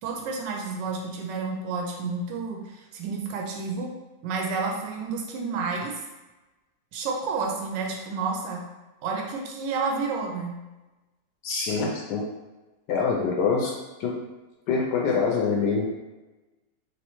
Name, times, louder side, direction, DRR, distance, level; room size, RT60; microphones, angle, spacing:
voice 1, 0.0-3.9 4.2-6.0 6.9-8.7 9.0-10.6, right 4 dB, 80° right, 0 dB, 1.2 m, -30 dB
voice 2, 11.4-12.2 12.9-13.7 14.0-14.1 14.7-15.9, left 5 dB, 80° left, -1 dB, 1.2 m, -24 dB
3.2 x 3.0 x 3.0 m, 1.1 s
omnidirectional pair, 1.9 m